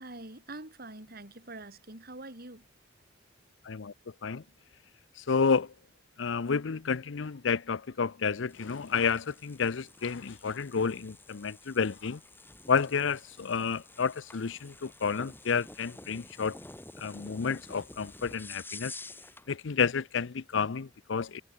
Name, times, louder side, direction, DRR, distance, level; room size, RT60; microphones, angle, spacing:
voice 1, 0.0-2.7, right 2 dB, 50° right, 5.0 m, -45 dB
voice 2, 5.2-5.7 6.2-12.2 12.7-16.6 17.0-18.9 19.5-21.4, left 5 dB, 75° left, 0.6 m, -30 dB
sound 1, 8.5-19.5, left 2 dB, 10° left, 4.9 m, -50 dB
head